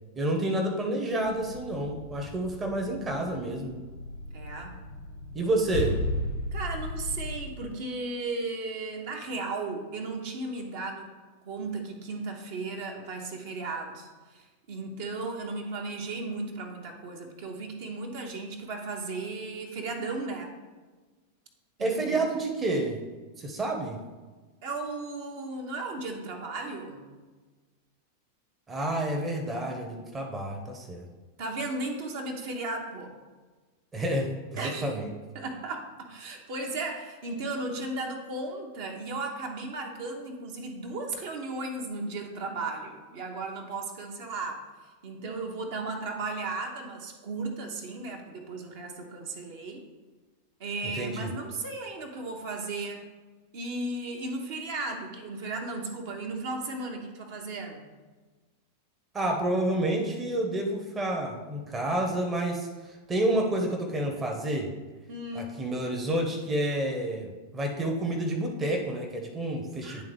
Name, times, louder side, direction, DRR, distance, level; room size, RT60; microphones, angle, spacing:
voice 1, 0.2-3.8 5.3-6.0 21.8-23.0 23.4-24.0 28.7-31.0 33.9-35.1 50.9-51.3 59.1-64.7 65.3-70.0, right 1 dB, 20° right, 1 dB, 0.9 m, -29 dB
sound 1, 1.2-7.7, left 1 dB, 70° left, 0.8 m, -36 dB
voice 2, 4.3-4.8 6.5-11.1 11.5-20.5 21.8-22.2 24.6-27.1 31.4-33.2 34.6-34.9 35.3-44.7 45.0-49.8 50.6-53.1 53.5-57.8 65.1-65.5 69.8-70.0, right 3 dB, 50° right, 2 dB, 1.0 m, -35 dB
10.5 x 3.6 x 3.4 m, 1.3 s
figure-of-eight pair, 90°, 0 cm